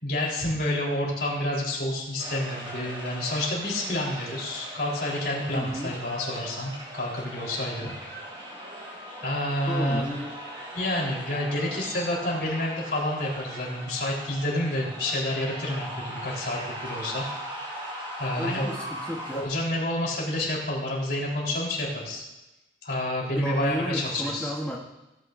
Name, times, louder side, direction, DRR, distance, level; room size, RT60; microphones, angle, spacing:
voice 1, 0.0-7.9 9.2-10.2 10.7-17.2 18.2-18.7 19.3-22.2 22.8-24.5, left 1 dB, 65° left, -3 dB, 3.8 m, -29 dB
sound 1, 2.2-19.4, right 1 dB, 30° right, 4.5 m, -39 dB
voice 2, 5.5-6.0 7.9-8.0 9.7-10.4 18.4-19.5 23.4-24.8, equal, 5° left, -4 dB, 1.0 m, -33 dB
17.5 x 9.4 x 2.6 m, 0.99 s
head